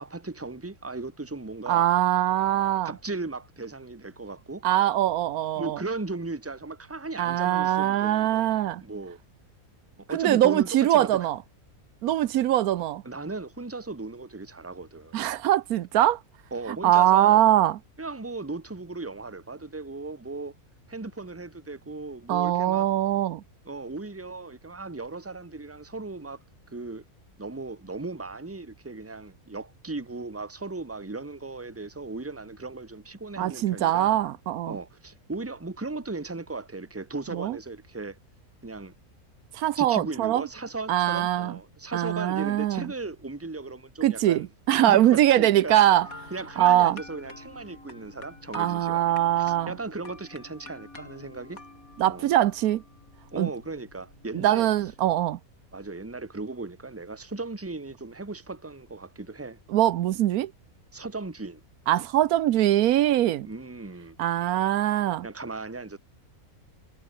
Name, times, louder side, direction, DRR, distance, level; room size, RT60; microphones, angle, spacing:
voice 1, 0.0-1.9 2.8-4.6 5.6-8.5 8.8-9.2 10.0-11.1 13.0-15.2 16.5-17.4 18.0-20.5 20.9-22.9 23.7-26.4 26.7-27.0 27.4-34.2 34.6-38.2 38.6-38.9 39.7-44.5 44.8-45.7 46.3-51.6 52.0-52.3 53.3-54.7 55.7-59.6 60.9-61.6 63.4-64.2 65.2-66.0, right 3 dB, 10° right, 1.3 m, -37 dB
voice 2, 1.7-2.9 4.6-5.8 7.2-8.8 10.1-11.4 12.0-13.0 15.1-16.2 16.7-17.8 22.3-23.4 33.4-34.8 37.3-37.6 39.5-40.5 40.9-41.6 41.9-42.9 44.0-46.1 46.6-47.0 48.5-49.8 52.0-52.8 53.4-53.5 54.3-55.4 59.7-60.5 61.9-63.5 64.2-65.3, right 13 dB, 85° right, 1.1 m, -22 dB
sound 1, 46.0-55.4, left 2 dB, 70° left, 5.9 m, -48 dB
omnidirectional pair, 1.5 m